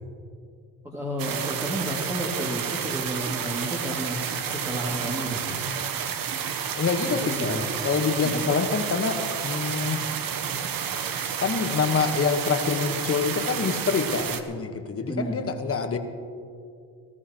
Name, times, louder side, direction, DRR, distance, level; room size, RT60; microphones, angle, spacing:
voice 1, 0.8-5.6 7.2-7.7 8.2-8.5 15.0-15.4, right 1 dB, 10° right, -4 dB, 2.3 m, -32 dB
sound 1, 1.2-14.4, right 7 dB, 60° right, 1.0 m, -30 dB
voice 2, 6.8-10.0 11.4-16.0, left 5 dB, 35° left, 6 dB, 1.3 m, -26 dB
19.5 x 13.5 x 3.0 m, 2.4 s
cardioid pair, 80°, 38 cm